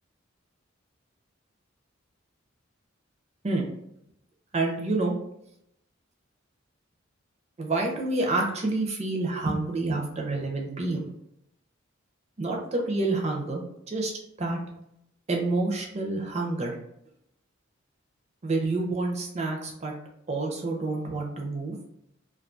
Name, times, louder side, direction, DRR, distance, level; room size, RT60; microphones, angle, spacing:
voice 1, 4.5-5.1 7.6-11.1 12.4-14.1 14.4-14.6 15.3-16.8 18.4-19.9 20.3-21.8, right 2 dB, 35° right, 1 dB, 0.5 m, -28 dB
2.3 x 2.2 x 2.5 m, 0.77 s
head